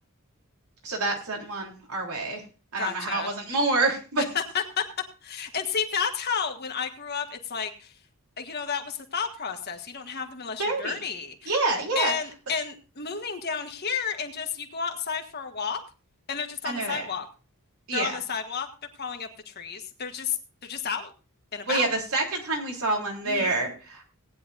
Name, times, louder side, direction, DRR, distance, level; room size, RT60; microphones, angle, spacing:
voice 1, 0.8-2.4 2.7-4.3 10.6-11.0 11.5-12.1 16.6-17.0 17.9-18.2 21.7-24.1, right 2 dB, 80° right, 0 dB, 3.4 m, -27 dB
voice 2, 2.8-3.3 4.3-4.8 5.2-7.9 8.4-11.5 11.9-15.8 16.3-17.3 17.9-18.7 19.0-20.4 20.6-21.1 21.5-21.9 23.2-23.5, left 6 dB, 45° left, 4 dB, 1.6 m, -31 dB
18.5 x 9.8 x 2.6 m, 0.33 s
head